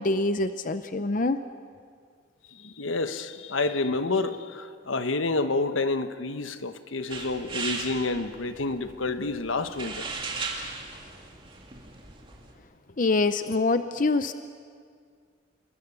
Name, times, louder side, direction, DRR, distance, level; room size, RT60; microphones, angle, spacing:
voice 1, 0.0-1.4 13.0-14.3, left 3 dB, 40° left, 10 dB, 0.6 m, -25 dB
voice 2, 2.5-10.1, left 3 dB, 80° left, 10 dB, 1.1 m, -29 dB
sound 1, 7.1-12.5, right 4 dB, 25° right, 2.8 m, -37 dB
28.5 x 22.5 x 6.9 m, 2.1 s
head